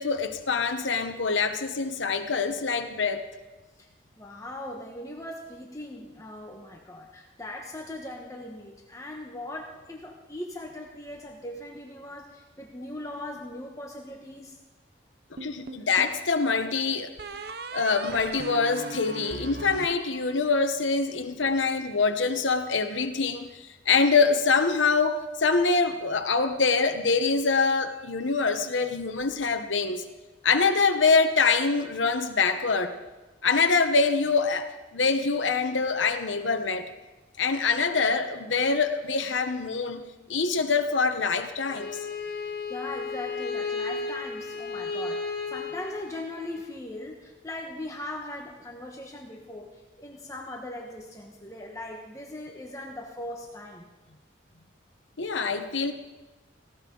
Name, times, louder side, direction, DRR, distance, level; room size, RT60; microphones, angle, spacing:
voice 1, 0.0-3.2 15.4-17.1 17.7-30.1 30.4-33.0 33.4-36.9 37.4-40.0 40.3-41.9 55.2-55.9, left 4 dB, 90° left, 7 dB, 1.1 m, -25 dB
voice 2, 4.2-14.6 42.3-53.9, left 1 dB, 15° left, 0 dB, 1.3 m, -39 dB
sound 1, 15.4-16.2 17.2-20.7, right 3 dB, 55° right, 0.7 m, -39 dB
Bowed string instrument, 41.6-46.6, left 4 dB, 55° left, 2.0 m, -34 dB
18.5 x 16.5 x 3.9 m, 1.1 s
head